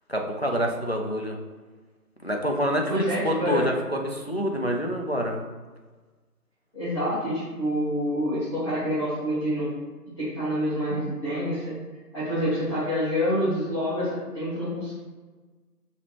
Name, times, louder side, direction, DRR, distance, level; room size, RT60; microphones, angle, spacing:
voice 1, 0.1-1.4 2.2-5.5, equal, 45° left, 1 dB, 0.4 m, -27 dB
voice 2, 2.9-3.6 6.7-9.7 10.2-11.7 12.1-14.1 14.3-14.9, equal, 20° left, -16 dB, 1.2 m, -27 dB
5.8 x 3.0 x 3.0 m, 1.3 s
figure-of-eight pair, 165°, 48 cm